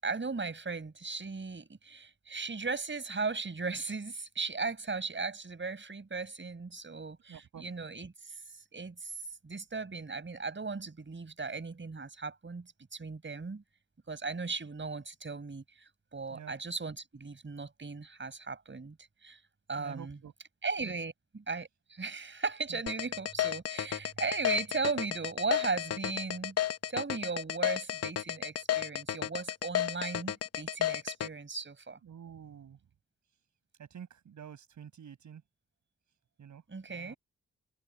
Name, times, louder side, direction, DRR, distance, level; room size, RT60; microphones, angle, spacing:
voice 1, 0.0-8.4 8.7-9.2 9.4-13.6 14.1-19.0 19.2-19.4 19.7-20.2 20.6-26.6 26.9-32.0 36.7-37.2, right 4 dB, 40° right, 5.6 m, -37 dB
voice 2, 7.3-7.7 16.3-16.5 19.8-20.3 20.8-21.0 22.7-22.8 32.0-32.8 33.8-35.4 36.4-36.6 36.9-37.2, right 8 dB, 70° right, 5.3 m, -48 dB
sound 1, 22.9-31.3, left 11 dB, 50° left, 0.7 m, -32 dB
hypercardioid pair, 40°, 31 cm